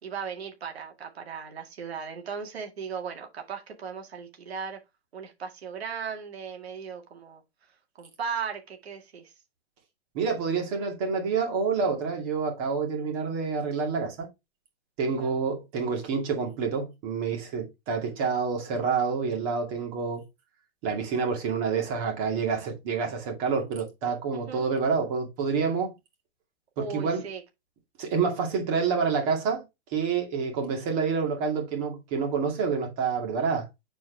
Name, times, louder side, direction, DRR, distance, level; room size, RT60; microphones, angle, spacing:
voice 1, 0.0-4.8 5.1-7.4 8.0-9.3 15.0-15.4 24.3-24.7 26.8-27.4, right 6 dB, 85° right, 2.1 m, -37 dB
voice 2, 10.1-14.3 15.0-20.3 20.8-25.9 26.8-27.2 28.0-29.6 29.9-33.7, right 5 dB, 35° right, 2.3 m, -28 dB
7.4 x 4.6 x 3.3 m
hypercardioid pair, 160°, 31 cm